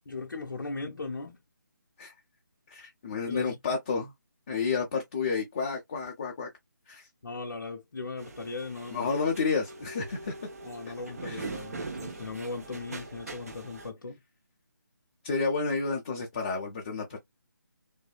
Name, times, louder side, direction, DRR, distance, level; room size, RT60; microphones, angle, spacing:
voice 1, 0.1-1.4 3.3-3.6 7.2-9.1 10.6-14.2, left 3 dB, 75° left, 0.5 m, -38 dB
voice 2, 2.7-4.1 4.5-6.5 6.9-7.1 8.9-10.3 11.2-11.5 15.2-17.2, left 4 dB, 20° left, 0.4 m, -30 dB
sound 1, 8.2-13.9, right 3 dB, 50° right, 0.7 m, -42 dB
2.6 x 2.5 x 2.2 m
figure-of-eight pair, 160°, 11 cm